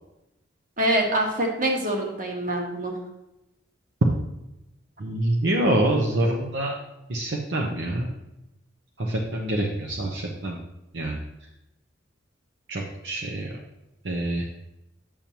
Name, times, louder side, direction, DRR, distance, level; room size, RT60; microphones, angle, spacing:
voice 1, 0.8-2.9, right 1 dB, 45° right, 1 dB, 1.5 m, -25 dB
voice 2, 5.0-6.8 7.1-8.1 9.0-10.6 10.9-11.1 12.7-13.6 14.0-14.5, right 1 dB, 65° right, 0 dB, 0.8 m, -26 dB
8.8 x 6.9 x 2.9 m, 0.91 s
head